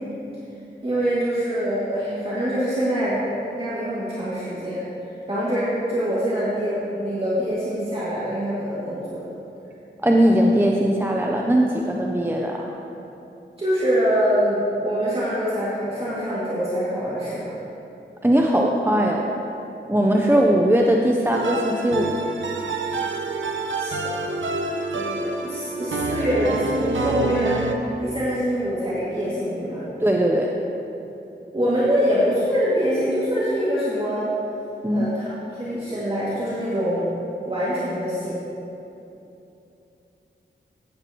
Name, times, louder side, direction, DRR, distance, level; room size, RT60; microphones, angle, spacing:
voice 1, 0.8-4.9 5.3-9.2 13.6-17.6 20.0-20.3 23.8-24.1 24.9-27.6 28.0-29.9 31.5-34.3 34.9-37.1 37.4-38.4, equal, 30° right, -10 dB, 2.3 m, -24 dB
voice 2, 10.0-12.7 18.2-19.3 19.9-22.1 30.0-30.5 34.8-35.1, right 1 dB, 10° right, 0 dB, 0.7 m, -19 dB
sound 1, 21.3-27.7, right 3 dB, 75° right, 0.8 m, -27 dB
15.0 x 8.8 x 3.0 m, 2.9 s
wide cardioid pair, 50°, 20 cm